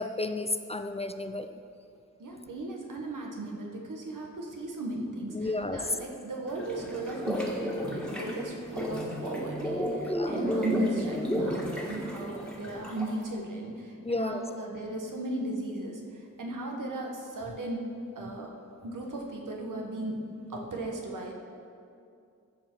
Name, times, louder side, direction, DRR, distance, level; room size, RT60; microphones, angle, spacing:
voice 1, 0.0-1.6 5.3-5.8 10.1-10.4 14.0-14.4, left 2 dB, 20° left, 8 dB, 0.4 m, -32 dB
voice 2, 2.2-17.8 18.1-18.5 18.8-20.1 20.5-21.3, right 2 dB, 90° right, 0 dB, 1.3 m, -36 dB
sound 1, 6.5-13.2, equal, 5° left, 1.6 m, -32 dB
15.0 x 5.1 x 4.6 m, 2.4 s
wide cardioid pair, 90°, 31 cm